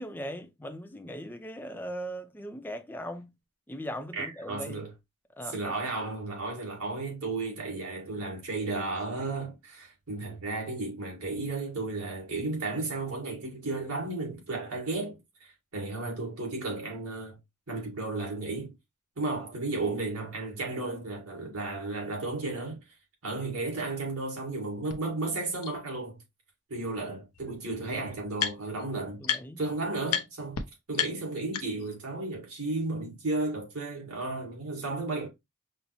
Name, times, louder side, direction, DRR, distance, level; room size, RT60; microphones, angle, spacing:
voice 1, 0.0-3.3 3.7-4.9 5.4-5.7 20.9-21.0 29.2-29.6, equal, 10° left, 0.4 m, -39 dB
voice 2, 4.1-4.9 5.5-17.4 17.7-18.7 19.2-22.8 23.2-26.2 26.7-29.2 29.6-30.6 30.9-35.3, right 2 dB, 70° right, 1.9 m, -34 dB
sound 1, 24.9-25.0 25.6-25.7 27.0-27.1 27.3-28.9 29.2-29.7 30.1-30.2 30.5-30.6 30.9-32.0, left 8 dB, 85° left, 0.5 m, -32 dB
5.3 x 2.0 x 2.9 m
head